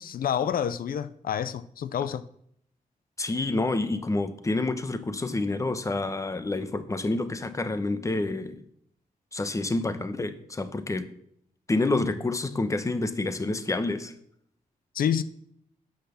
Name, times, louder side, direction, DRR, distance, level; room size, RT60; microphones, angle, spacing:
voice 1, 0.0-2.3 14.9-15.2, left 8 dB, 80° left, 0.6 m, -28 dB
voice 2, 3.2-8.6 9.3-11.1 11.7-14.1, left 2 dB, 20° left, 1.0 m, -28 dB
10.5 x 8.1 x 7.0 m
wide cardioid pair, 125°, 15 cm